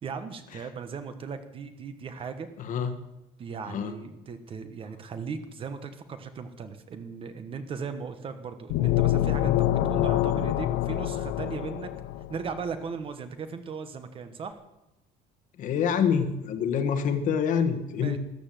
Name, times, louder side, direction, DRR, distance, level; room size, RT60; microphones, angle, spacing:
voice 1, 0.0-2.5 3.4-11.9 12.3-14.6 18.0-18.2, right 5 dB, 30° right, 10 dB, 1.2 m, -37 dB
voice 2, 2.6-2.9 3.7-3.9 15.6-18.2, left 7 dB, 45° left, 9 dB, 1.5 m, -26 dB
sound 1, 8.7-12.4, left 13 dB, 70° left, 0.7 m, -26 dB
13.5 x 12.5 x 7.7 m, 0.90 s
cardioid pair, 170°, 18 cm